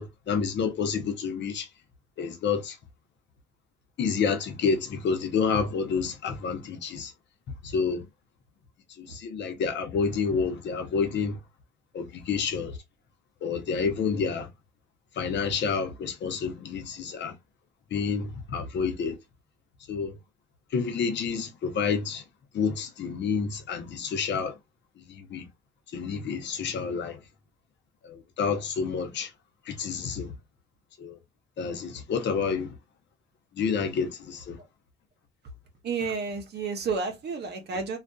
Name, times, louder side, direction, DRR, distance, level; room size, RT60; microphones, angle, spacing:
voice 1, 0.0-1.7 2.2-2.8 4.0-7.1 7.6-8.0 9.0-11.4 11.9-12.8 13.4-14.5 15.2-17.3 17.9-19.2 19.9-20.2 20.7-22.2 22.5-24.5 25.0-25.5 25.9-27.2 28.0-29.3 29.7-30.3 31.0-31.2 31.6-32.7 33.5-34.6, left 5 dB, 65° left, 0.7 m, -29 dB
voice 2, 35.8-38.0, right 4 dB, 55° right, 0.7 m, -31 dB
2.5 x 2.3 x 2.3 m
cardioid pair, 90°, 20 cm